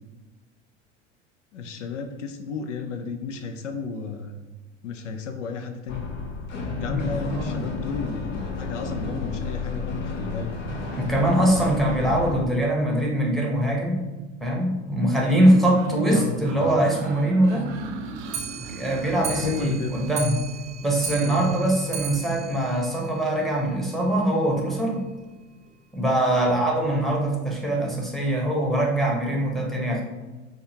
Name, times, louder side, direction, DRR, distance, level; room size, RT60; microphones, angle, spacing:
voice 1, 1.5-4.4 4.8-6.0 6.8-10.5 16.1-16.3 19.4-19.9 21.2-21.4 26.3-26.6, left 5 dB, 80° left, 6 dB, 0.5 m, -33 dB
sound 1, 5.9-12.4, left 4 dB, 60° left, 0.8 m, -31 dB
voice 2, 10.9-14.0 14.4-17.7 18.7-20.4 20.8-25.0 25.9-30.0, right 1 dB, ahead, -2 dB, 1.0 m, -22 dB
sound 2, 15.4-20.2, right 3 dB, 70° right, 0.5 m, -38 dB
Clock, 18.2-23.7 24.1-24.2 24.4-24.5 24.9-25.0 25.2-25.3 26.0-26.1 26.8-26.9 27.6-27.7, right 6 dB, 20° right, 0.4 m, -36 dB
5.3 x 2.3 x 2.8 m, 1.2 s
hypercardioid pair, 75°, 36 cm